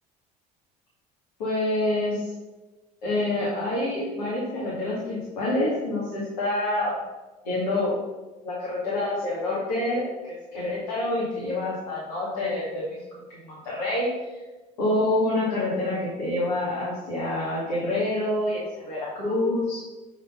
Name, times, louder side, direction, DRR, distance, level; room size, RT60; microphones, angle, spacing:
voice 1, 1.4-2.3 3.0-6.9 7.4-7.9 8.4-10.0 10.5-13.0 13.4-14.1 14.8-19.8, left 1 dB, 85° left, -7 dB, 2.1 m, -27 dB
7.2 x 3.8 x 5.8 m, 1.1 s
hypercardioid pair, 65°, 21 cm